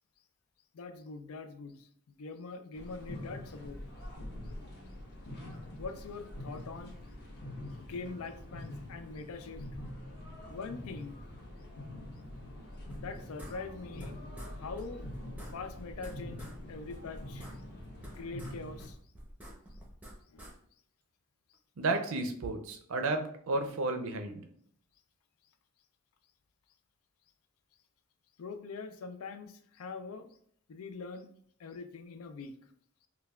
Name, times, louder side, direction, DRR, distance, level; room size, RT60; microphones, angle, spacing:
voice 1, 0.7-3.8 5.8-7.0 7.7-9.7 10.5-11.2 12.9-14.2 14.5-15.1 15.5-17.5 18.2-19.0 20.3-20.5 28.4-30.4 30.7-31.3 31.6-32.5, left 4 dB, 75° left, 9 dB, 0.4 m, -43 dB
sound 1, 2.7-18.9, left 1 dB, 50° left, 1.0 m, -45 dB
sound 2, 12.9-14.1 14.4-14.5 14.8-14.9 15.1-16.6 16.9-18.5 18.8-20.5, equal, 5° right, 0.6 m, -48 dB
voice 2, 21.8-24.4, right 2 dB, 65° right, 6 dB, 0.5 m, -32 dB
5.5 x 2.2 x 2.3 m, 0.63 s
head